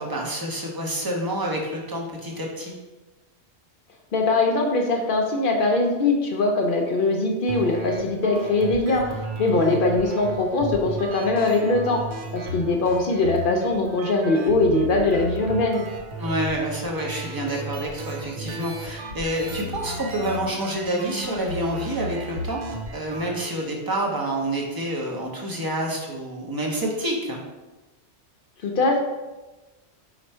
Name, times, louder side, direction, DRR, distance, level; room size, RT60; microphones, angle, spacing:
voice 1, 0.0-2.7 9.5-9.7 12.5-12.6 16.2-27.4, right 1 dB, 25° right, -1 dB, 0.5 m, -28 dB
voice 2, 4.1-9.1 9.4-12.0 12.3-15.9 28.6-29.0, left 2 dB, 60° left, 2 dB, 0.6 m, -21 dB
sound 1, 7.5-23.5, right 1 dB, 80° right, 0.9 m, -34 dB
4.4 x 2.4 x 4.2 m, 1.1 s
omnidirectional pair, 1.1 m